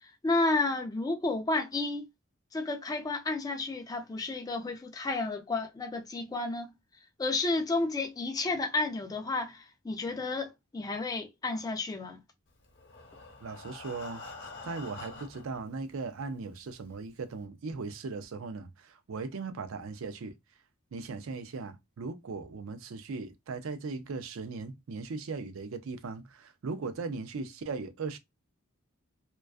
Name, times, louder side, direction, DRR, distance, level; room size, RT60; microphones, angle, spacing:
voice 1, 0.0-2.1 2.5-6.7 7.2-12.2, left 2 dB, 15° left, 0.3 m, -31 dB
Breathing, 12.7-15.6 16.4-16.5 16.8-16.9 17.4-17.5, left 3 dB, 55° left, 0.8 m, -46 dB
voice 2, 13.4-14.2 14.6-20.3 20.9-28.2, right 4 dB, 70° right, 0.4 m, -38 dB
2.4 x 2.3 x 2.2 m
head